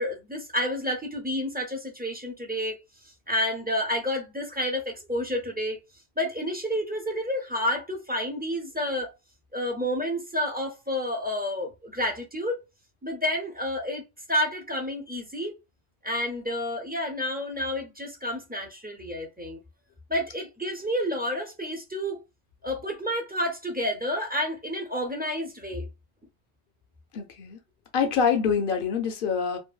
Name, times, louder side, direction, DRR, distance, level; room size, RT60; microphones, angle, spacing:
voice 1, 0.0-2.8 3.3-5.8 6.2-9.1 9.5-12.6 13.0-14.0 14.3-15.5 16.0-19.6 20.1-22.2 22.6-25.9, left 1 dB, 10° right, 0.4 m, -30 dB
voice 2, 27.1-27.6 27.9-29.6, left 6 dB, 60° left, 0.8 m, -25 dB
2.6 x 2.6 x 2.3 m
omnidirectional pair, 1.1 m